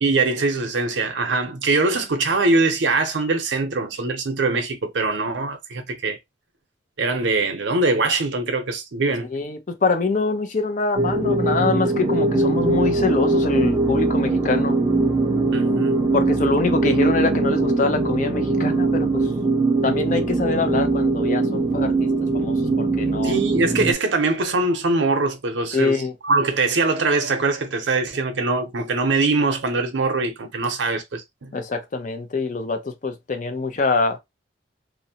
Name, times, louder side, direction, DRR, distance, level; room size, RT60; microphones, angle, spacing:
voice 1, 0.0-6.2 7.0-9.3 15.5-16.0 23.2-26.0 26.2-31.5, right 3 dB, 80° right, 0.6 m, -22 dB
voice 2, 9.3-14.8 16.1-19.2 19.8-23.4 25.7-26.1 31.5-34.2, left 3 dB, 45° left, 0.5 m, -24 dB
sound 1, 11.0-23.9, right 2 dB, 25° right, 0.5 m, -21 dB
2.6 x 2.0 x 2.7 m
head